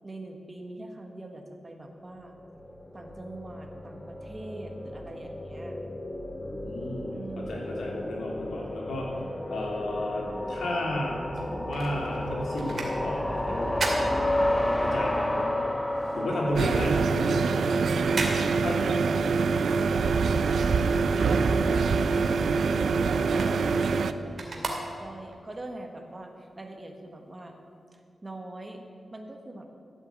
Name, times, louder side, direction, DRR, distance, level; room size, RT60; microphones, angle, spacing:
voice 1, 0.0-2.4 2.9-5.8 7.1-7.9 17.8-22.4 23.1-27.5 27.9-28.8 29.1-29.7, right 2 dB, 25° right, 4 dB, 1.6 m, -43 dB
sound 1, 2.4-17.7, left 1 dB, 10° left, 1.0 m, -32 dB
voice 2, 6.4-9.1 9.5-15.5 16.1-17.8 18.6-18.8 23.3-23.4, left 1 dB, 90° left, -2 dB, 3.2 m, -33 dB
sound 2, 11.3-15.0 15.3-21.3 21.6-25.4 25.9-26.0, right 3 dB, 55° right, 2.3 m, -37 dB
sound 3, 16.5-24.1, right 4 dB, 80° right, 0.5 m, -24 dB
13.5 x 8.2 x 8.2 m, 2.4 s
wide cardioid pair, 100°, 0 cm